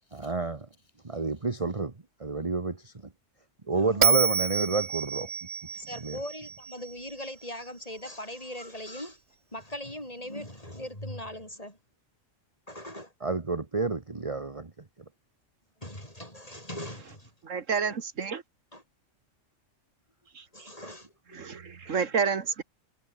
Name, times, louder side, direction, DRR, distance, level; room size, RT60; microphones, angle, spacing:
voice 1, 0.1-0.7 1.0-1.9 2.2-2.9 3.7-5.3 6.0-6.2 13.2-14.7, right 3 dB, 25° right, 1.4 m, -29 dB
voice 2, 3.7-4.2 5.7-9.2 9.5-11.8 12.7-13.1 15.8-17.3 17.9-18.0 18.7-18.8 20.5-21.5 21.8-22.0, left 1 dB, 30° left, 8.3 m, -40 dB
Bell, 4.0-7.3, right 6 dB, 55° right, 1.8 m, -28 dB
voice 3, 17.4-18.4 20.3-20.7 21.3-22.6, right 6 dB, 80° right, 1.9 m, -30 dB
omnidirectional pair, 1.3 m